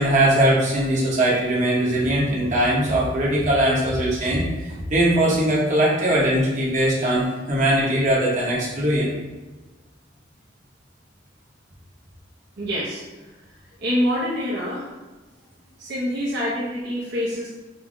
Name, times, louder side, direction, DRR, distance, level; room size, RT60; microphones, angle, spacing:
voice 1, 0.0-9.1, right 1 dB, 40° right, -6 dB, 1.1 m, -20 dB
voice 2, 12.6-13.3 13.8-14.9 15.8-17.5, equal, 65° right, -7 dB, 0.9 m, -26 dB
5.5 x 2.8 x 2.4 m, 1.2 s
head